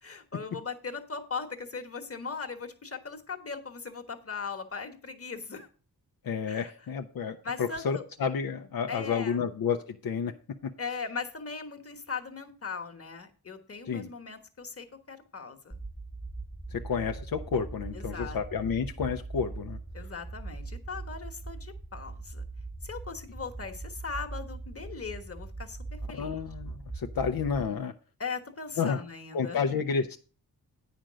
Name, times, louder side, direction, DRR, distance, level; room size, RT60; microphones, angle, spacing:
voice 1, 0.0-5.7 6.5-6.7 7.4-8.0 8.9-9.4 10.8-15.8 17.9-18.4 19.9-22.4 22.8-25.8 26.1-26.4 28.2-29.7, left 5 dB, 40° left, 5 dB, 1.3 m, -39 dB
voice 2, 6.2-10.3 10.6-10.7 13.9-14.1 16.7-19.8 26.1-27.9 28.8-29.0 29.3-30.2, left 6 dB, 65° left, 5 dB, 0.7 m, -30 dB
sound 1, 15.7-27.7, right 3 dB, ahead, 0.4 m, -41 dB
9.0 x 5.2 x 6.2 m, 0.37 s
wide cardioid pair, 105°, 37 cm